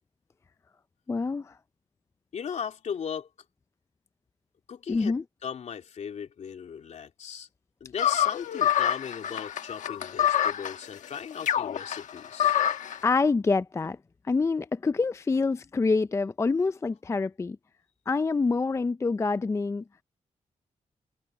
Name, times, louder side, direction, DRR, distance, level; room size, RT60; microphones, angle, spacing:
voice 1, 1.1-1.6 4.9-5.2 13.0-14.0 14.3-17.6 18.1-19.8, left 4 dB, 20° left, 0.4 m, -26 dB
voice 2, 2.3-3.3 4.7-5.1 5.4-7.5 7.8-12.5, left 7 dB, 70° left, 2.8 m, -37 dB
sound 1, 8.0-13.0, left 10 dB, 90° left, 1.2 m, -26 dB
wide cardioid pair, 110°, 12 cm